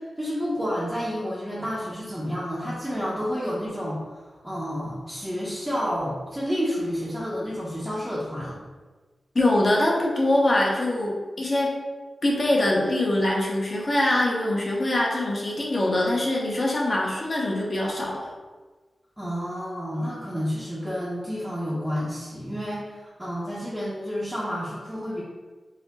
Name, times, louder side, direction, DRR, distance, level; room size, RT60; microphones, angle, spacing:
voice 1, 0.0-8.6 19.2-25.2, equal, 10° right, -8 dB, 0.7 m, -30 dB
voice 2, 9.3-11.7 12.2-18.2, left 1 dB, 40° left, -3 dB, 0.8 m, -23 dB
4.1 x 2.0 x 4.0 m, 1.3 s
wide cardioid pair, 105°, 0 cm